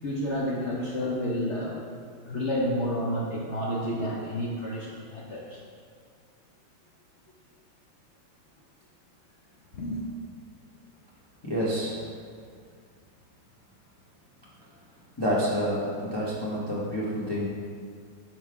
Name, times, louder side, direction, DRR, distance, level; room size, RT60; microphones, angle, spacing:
voice 1, 0.0-1.8 2.2-5.6 9.7-10.0, equal, 65° left, -4 dB, 0.7 m, -30 dB
voice 2, 11.4-12.0 15.2-17.5, equal, 20° left, -8 dB, 0.7 m, -28 dB
5.5 x 5.4 x 4.7 m, 2.1 s
omnidirectional pair, 2.1 m